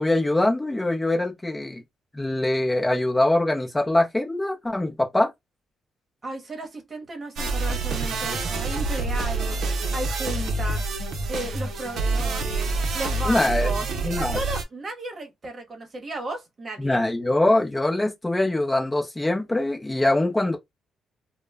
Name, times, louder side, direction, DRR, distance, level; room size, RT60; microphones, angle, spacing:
voice 1, 0.0-1.8 2.1-5.3 13.3-13.7 14.0-14.4 16.8-20.6, left 1 dB, 15° left, 0.6 m, -23 dB
voice 2, 6.2-10.8 11.3-13.8 14.2-17.0, right 2 dB, 35° right, 0.9 m, -34 dB
sound 1, 7.4-14.6, right 3 dB, 65° right, 0.6 m, -27 dB
2.1 x 2.0 x 3.3 m
cardioid pair, 90°, 0 cm